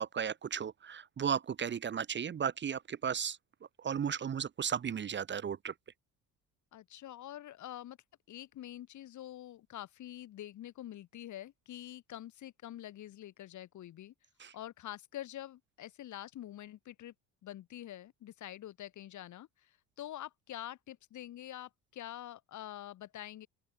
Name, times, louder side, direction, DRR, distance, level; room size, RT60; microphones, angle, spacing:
voice 1, 0.0-3.4 3.8-5.7 14.4-14.5, right 7 dB, 35° right, 1.3 m, -35 dB
voice 2, 6.7-8.0 8.3-14.1 14.5-17.1 17.4-23.5, left 13 dB, 60° left, 5.3 m, -46 dB
open air
cardioid pair, 115°, 33 cm